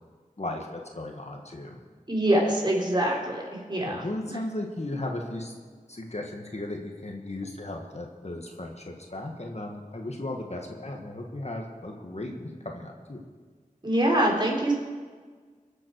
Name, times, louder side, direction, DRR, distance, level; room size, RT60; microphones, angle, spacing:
voice 1, 0.4-1.8 3.8-5.5 5.9-13.2, left 1 dB, 55° left, 1 dB, 1.8 m, -36 dB
voice 2, 2.1-3.4 3.7-4.0 4.3-4.4 13.8-14.7, right 1 dB, 35° right, -2 dB, 3.9 m, -24 dB
23.5 x 7.8 x 4.6 m, 1.5 s
wide cardioid pair, 45°, 14 cm